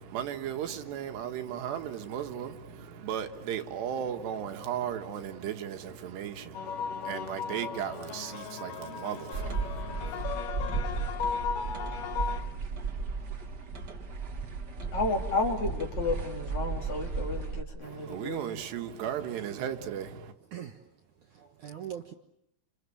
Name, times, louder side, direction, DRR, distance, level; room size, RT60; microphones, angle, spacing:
voice 1, 0.0-10.2 17.8-20.3, right 9 dB, 85° right, 3.8 m, -36 dB
sound 1, 6.5-12.4, left 7 dB, 65° left, 2.4 m, -36 dB
sound 2, 9.3-17.6, right 4 dB, 40° right, 1.6 m, -34 dB
voice 2, 14.9-18.6, left 3 dB, 45° left, 4.6 m, -32 dB
voice 3, 19.4-19.9 20.5-20.8 21.3-22.1, right 10 dB, 60° right, 2.3 m, -42 dB
29.5 x 27.5 x 7.0 m
omnidirectional pair, 4.8 m